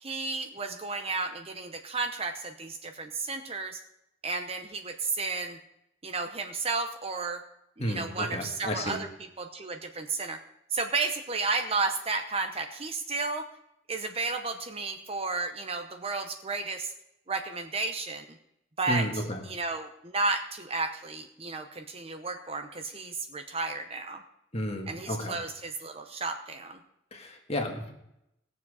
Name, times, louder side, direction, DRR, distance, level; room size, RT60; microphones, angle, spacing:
voice 1, 0.0-3.8 4.2-5.6 6.0-7.4 7.8-9.1 9.4-10.4 10.7-13.5 13.9-16.9 17.3-18.3 18.8-24.2 24.9-26.8, right 3 dB, 30° right, 6 dB, 0.7 m, -32 dB
voice 2, 7.8-9.0 18.9-19.4 24.5-25.4 27.1-27.9, equal, 30° left, 2 dB, 1.7 m, -32 dB
19.5 x 7.2 x 4.8 m, 0.82 s
head